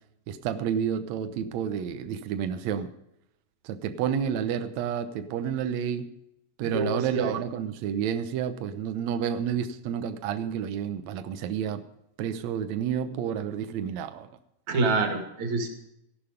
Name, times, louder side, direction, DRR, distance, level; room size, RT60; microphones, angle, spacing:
voice 1, 0.3-2.9 3.6-6.1 6.6-11.8 12.2-14.3, right 8 dB, 90° right, 9 dB, 1.5 m, -30 dB
voice 2, 6.6-7.4 14.7-15.7, right 3 dB, 50° right, 4 dB, 3.2 m, -26 dB
15.5 x 11.5 x 5.1 m, 0.81 s
omnidirectional pair, 4.5 m